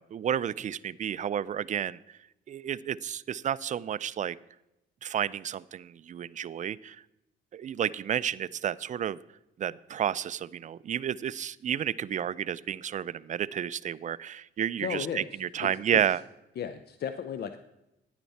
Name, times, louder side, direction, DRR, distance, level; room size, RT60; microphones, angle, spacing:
voice 1, 0.0-2.2 2.5-4.4 5.0-7.0 7.5-9.2 9.6-16.2, right 9 dB, 40° right, 18 dB, 0.4 m, -31 dB
voice 2, 14.8-15.3 15.6-16.0 16.6-17.6, left 8 dB, 55° left, 10 dB, 0.6 m, -35 dB
10.5 x 9.1 x 4.2 m, 0.90 s
cardioid pair, 90°, 20 cm